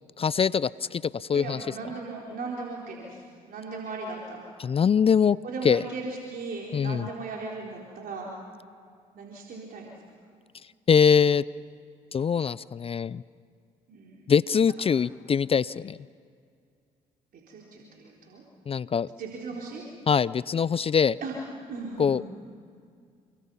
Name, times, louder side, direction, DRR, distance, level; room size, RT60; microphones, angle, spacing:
voice 1, 0.2-1.6 4.6-5.4 5.6-5.8 6.7-7.1 10.9-11.4 12.1-13.2 14.3-16.0 18.7-19.1 20.1-21.2 22.0-22.2, left 6 dB, 35° left, 20 dB, 0.5 m, -23 dB
voice 2, 1.3-3.2 3.5-4.5 5.4-8.3 9.1-10.0 13.9-14.3 17.5-18.4 19.2-19.8 21.2-21.3 21.7-22.3, right 3 dB, 60° right, -2 dB, 4.0 m, -37 dB
28.5 x 23.0 x 5.6 m, 2.3 s
hypercardioid pair, 55°, 17 cm